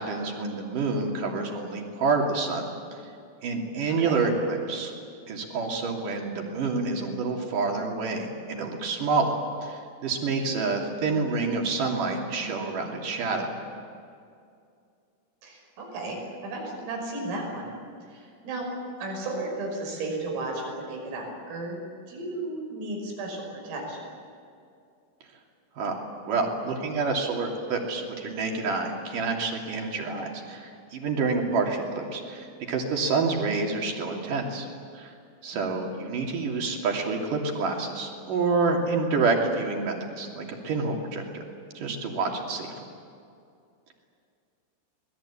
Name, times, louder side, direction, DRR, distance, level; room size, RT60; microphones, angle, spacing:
voice 1, 0.0-2.7 2.9-3.0 3.4-4.9 5.3-9.3 9.6-13.6 25.8-34.7 34.9-35.1 35.4-41.4 41.8-42.7, right 4 dB, 45° right, 1 dB, 4.0 m, -28 dB
voice 2, 3.9-4.2 15.4-17.7 18.1-18.7 19.0-24.0 35.5-35.6, right 2 dB, 90° right, 0 dB, 8.4 m, -34 dB
26.5 x 21.0 x 8.7 m, 2.4 s
omnidirectional pair, 5.8 m